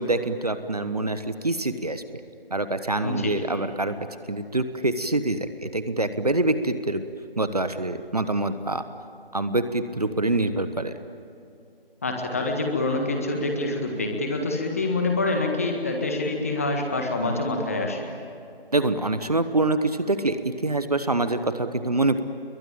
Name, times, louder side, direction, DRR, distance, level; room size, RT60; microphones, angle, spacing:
voice 1, 0.0-2.0 2.5-3.9 4.3-7.0 7.4-8.8 9.3-10.9 18.7-22.2, right 2 dB, 40° right, 11 dB, 1.1 m, -25 dB
voice 2, 3.0-3.3 12.0-18.0, left 2 dB, 15° left, 3 dB, 1.6 m, -26 dB
29.5 x 22.5 x 8.8 m, 2.5 s
figure-of-eight pair, 165°, 30 cm